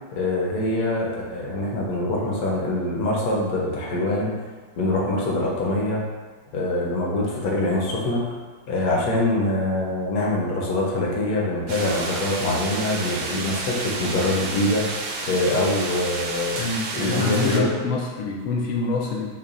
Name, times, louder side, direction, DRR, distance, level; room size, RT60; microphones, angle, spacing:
voice 1, 0.1-4.3 4.8-6.0 6.5-8.4 8.7-14.8 15.2-16.6 17.0-17.7, left 2 dB, 60° left, -3 dB, 1.0 m, -24 dB
sound 1, 11.7-17.6, right 3 dB, 90° right, 1.3 m, -31 dB
voice 2, 16.6-19.4, left 3 dB, 85° left, -2 dB, 0.7 m, -26 dB
5.5 x 2.2 x 2.4 m, 1.4 s
omnidirectional pair, 2.0 m